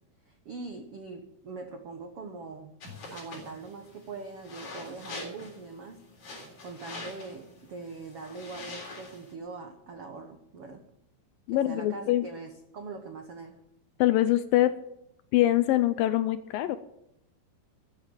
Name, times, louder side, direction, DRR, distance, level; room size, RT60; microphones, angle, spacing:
voice 1, 0.2-2.8 3.1-6.0 6.6-10.8 11.5-13.6, right 4 dB, 70° right, 5 dB, 1.4 m, -42 dB
sound 1, 2.8-9.3, left 2 dB, 50° left, 4.7 m, -44 dB
voice 2, 11.5-12.3 14.0-14.7 15.3-16.8, left 14 dB, 80° left, 13 dB, 2.2 m, -24 dB
13.5 x 8.3 x 8.8 m, 0.81 s
omnidirectional pair, 4.5 m